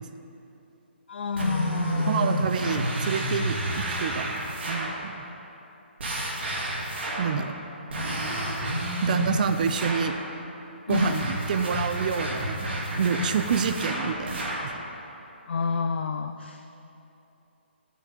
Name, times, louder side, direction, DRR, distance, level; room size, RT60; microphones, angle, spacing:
voice 1, 1.1-2.6 10.9-11.3 15.5-16.7, left 5 dB, 65° left, 7 dB, 0.4 m, -29 dB
sound 1, 1.3-5.0 6.0-7.4 7.9-10.2 10.9-14.8, right 1 dB, 65° right, 2.2 m, -30 dB
voice 2, 2.0-4.3 4.7-5.2 7.2-7.6 9.0-10.2 10.9-12.7 12.9-14.8, right 6 dB, 45° right, 9 dB, 0.5 m, -28 dB
11.5 x 6.1 x 5.2 m, 2.9 s
hypercardioid pair, 150°, 6 cm